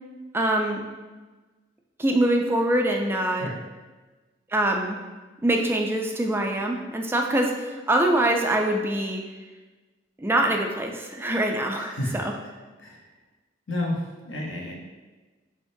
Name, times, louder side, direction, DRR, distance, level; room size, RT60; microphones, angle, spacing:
voice 1, 0.3-0.8 2.0-3.5 4.5-5.0 5.4-9.2 10.2-12.3, right 1 dB, 10° right, 2 dB, 0.3 m, -24 dB
voice 2, 11.8-12.3 12.8-13.0 13.7-14.7, left 1 dB, 80° left, -1 dB, 0.9 m, -31 dB
5.1 x 3.6 x 2.6 m, 1.3 s
head